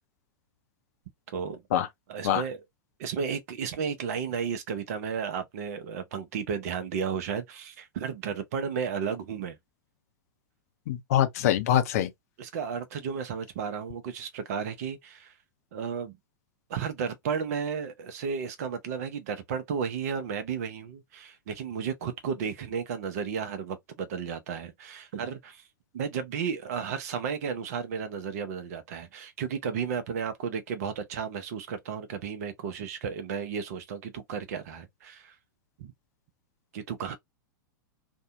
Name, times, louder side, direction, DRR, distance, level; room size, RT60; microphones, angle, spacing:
voice 1, 1.3-1.6 2.1-2.6 3.0-9.6 12.4-15.3 15.7-16.2 16.7-25.6 25.9-35.3 35.8-35.9 36.7-37.1, right 6 dB, 50° right, 0.6 m, -33 dB
voice 2, 10.9-12.1, left 11 dB, 50° left, 0.5 m, -24 dB
2.6 x 2.2 x 2.6 m
figure-of-eight pair, 100°, 11 cm